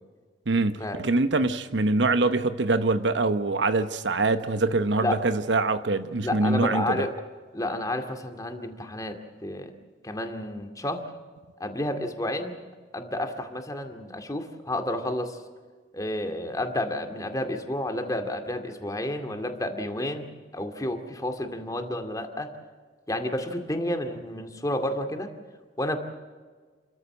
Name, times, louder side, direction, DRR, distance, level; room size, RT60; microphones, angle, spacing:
voice 1, 0.5-7.0, right 3 dB, 75° right, 0.9 m, -24 dB
voice 2, 6.2-7.1 7.5-9.7 10.0-11.0 11.6-12.6 12.9-15.4 15.9-20.3 20.5-22.5 23.1-25.3 25.8-26.0, left 1 dB, 20° left, 2.2 m, -30 dB
29.0 x 14.0 x 7.9 m
head